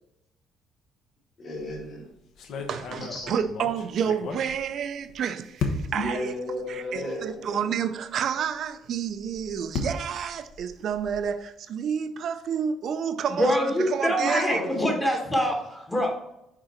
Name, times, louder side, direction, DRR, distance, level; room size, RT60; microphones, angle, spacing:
voice 1, 1.4-2.1 3.1-3.3 5.9-7.7 14.2-15.0, left 1 dB, 40° left, 2.0 m, -33 dB
sound 1, 1.5-1.8 2.4-5.1 5.6-6.1 6.9-7.0 7.3-7.4 9.0-11.4, left 4 dB, 60° left, 1.1 m, -35 dB
voice 2, 2.7-6.3 6.7-14.6, right 7 dB, 45° right, 0.5 m, -30 dB
voice 3, 13.3-16.3, equal, 10° left, 1.2 m, -25 dB
9.8 x 3.9 x 4.3 m
cardioid pair, 170°, 0 cm